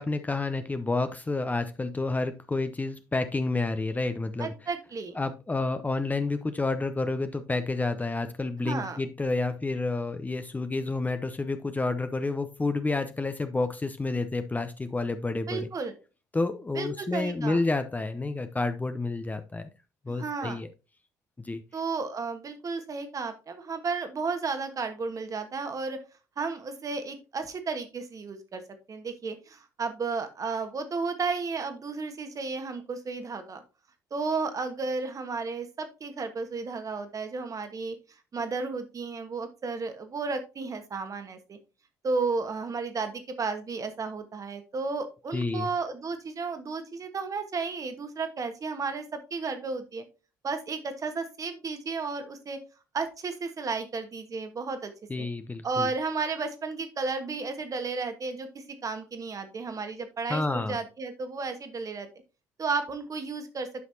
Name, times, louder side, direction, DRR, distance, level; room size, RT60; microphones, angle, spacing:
voice 1, 0.0-4.5 5.1-15.7 16.3-19.6 20.1-20.7 21.4-21.6 45.3-45.7 55.1-55.9 60.3-60.8, left 3 dB, 15° left, 9 dB, 0.7 m, -29 dB
voice 2, 4.4-5.2 8.6-9.0 15.5-15.9 16.7-17.6 20.1-20.6 21.7-26.0 26.4-28.6 28.9-33.6 34.1-37.9 38.3-41.6 42.0-50.0 50.4-52.6 52.9-54.9 55.2-55.3 55.6-62.1 62.6-63.7, right 4 dB, 35° right, 8 dB, 1.4 m, -33 dB
9.6 x 6.0 x 2.8 m, 0.31 s
figure-of-eight pair, 50°, 10 cm